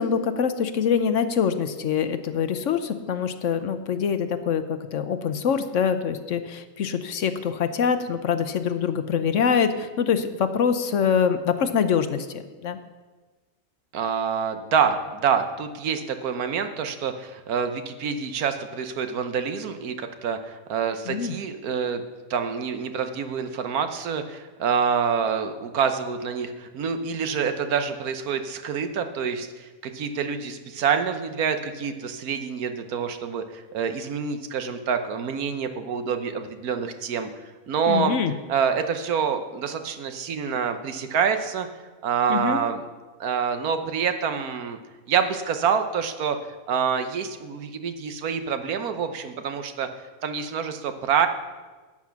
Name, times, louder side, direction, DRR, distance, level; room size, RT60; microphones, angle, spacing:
voice 1, 0.0-12.8 21.1-21.4 37.9-38.3 42.3-42.6, left 7 dB, 65° left, 10 dB, 0.9 m, -24 dB
voice 2, 13.9-22.0 22.3-37.3 37.7-38.2 38.5-41.7 42.0-42.8 43.2-44.8 45.1-46.4 46.7-49.9 50.2-51.3, right 6 dB, 80° right, 8 dB, 1.4 m, -26 dB
12.0 x 8.5 x 5.9 m, 1.3 s
omnidirectional pair, 1.5 m